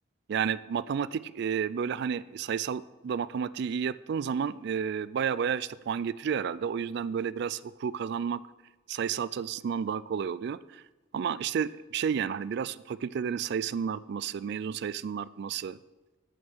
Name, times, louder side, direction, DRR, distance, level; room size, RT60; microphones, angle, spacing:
voice 1, 0.3-8.4 8.9-10.8 11.1-15.8, right 7 dB, 55° right, 18 dB, 0.3 m, -31 dB
8.3 x 7.1 x 6.2 m, 1.1 s
head